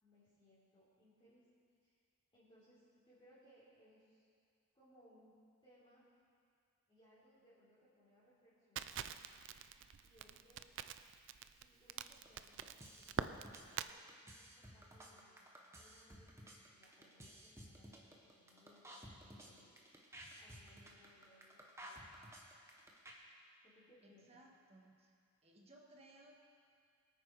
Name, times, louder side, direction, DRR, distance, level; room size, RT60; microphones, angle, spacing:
voice 1, 0.0-1.4 1.8-2.0 2.3-4.2 4.7-6.0 6.9-9.0 10.0-10.6 11.6-14.5 14.7-15.4 15.7-19.8 20.4-22.3 23.6-24.4, equal, 25° left, -12 dB, 4.0 m, -68 dB
Crackle, 8.8-13.9, right 7 dB, 55° right, 0.4 m, -45 dB
sound 1, 12.1-23.1, equal, 15° right, 1.4 m, -55 dB
voice 2, 24.0-25.1 25.4-26.3, right 1 dB, 30° right, 0 dB, 1.6 m, -62 dB
24.0 x 8.9 x 4.9 m, 2.3 s
head